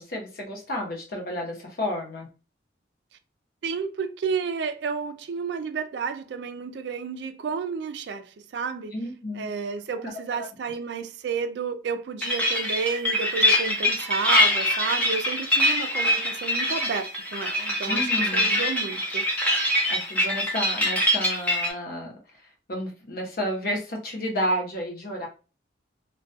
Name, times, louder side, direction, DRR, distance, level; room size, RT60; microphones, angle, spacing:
voice 1, 0.0-2.3 8.9-9.5 10.3-10.5 17.8-18.5 19.9-22.1 22.7-25.3, equal, 55° left, 0.8 m, -31 dB
voice 2, 3.6-8.9 9.3-19.2, right 5 dB, 65° right, 0.3 m, -31 dB
sound 1, 12.2-21.7, left 1 dB, 10° left, 0.6 m, -24 dB
2.3 x 2.2 x 2.5 m
head